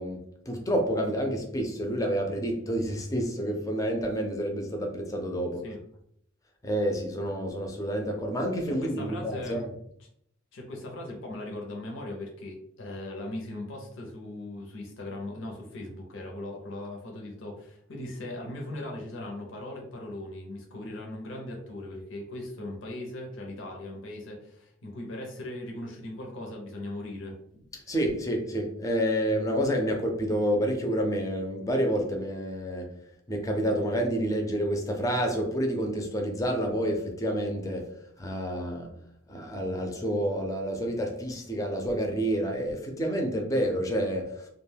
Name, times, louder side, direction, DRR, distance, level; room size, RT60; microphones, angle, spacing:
voice 1, 0.0-5.6 6.6-9.7 27.7-32.9 33.3-38.9 39.3-44.5, equal, 15° left, 2 dB, 0.4 m, -29 dB
voice 2, 8.7-9.8 10.5-27.3, left 1 dB, 80° left, 0 dB, 0.6 m, -39 dB
2.4 x 2.2 x 3.2 m, 0.70 s
head